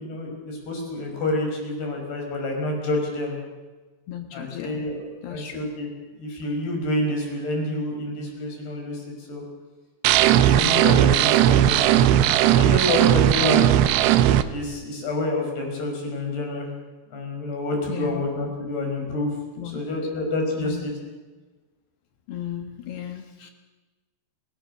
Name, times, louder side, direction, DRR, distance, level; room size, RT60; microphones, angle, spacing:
voice 1, 0.0-3.4 4.3-5.9 6.2-9.4 10.2-13.8 14.5-16.7 17.1-20.9, left 1 dB, 55° left, 1 dB, 7.2 m, -28 dB
voice 2, 4.1-4.9 5.2-5.6 10.6-11.0 17.9-18.3 19.6-19.8 20.6-20.9 22.3-23.5, left 11 dB, 70° left, 5 dB, 2.7 m, -35 dB
sound 1, 10.0-14.4, right 12 dB, 75° right, 2.6 m, -17 dB
30.0 x 18.0 x 6.5 m, 1.2 s
omnidirectional pair, 5.8 m